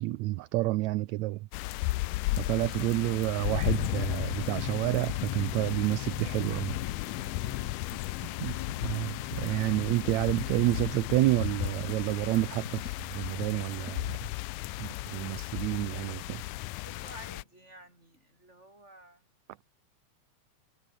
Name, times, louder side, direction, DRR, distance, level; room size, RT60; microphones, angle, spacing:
voice 1, 0.0-1.5 2.4-6.8 8.4-8.6 8.8-14.2 14.8-16.4, right 18 dB, 75° right, 1.8 m, -29 dB
sound 1, 1.5-17.4, left 20 dB, 90° left, 2.2 m, -35 dB
sound 2, 2.3-14.7 15.3-15.4, left 6 dB, 40° left, 1.3 m, -46 dB
voice 2, 2.3-2.7 7.8-8.6 15.4-16.0 16.8-19.4, right 1 dB, 20° right, 7.9 m, -54 dB
sound 3, 3.7-16.1 16.7-16.8, left 9 dB, 65° left, 2.8 m, -44 dB
omnidirectional pair, 3.5 m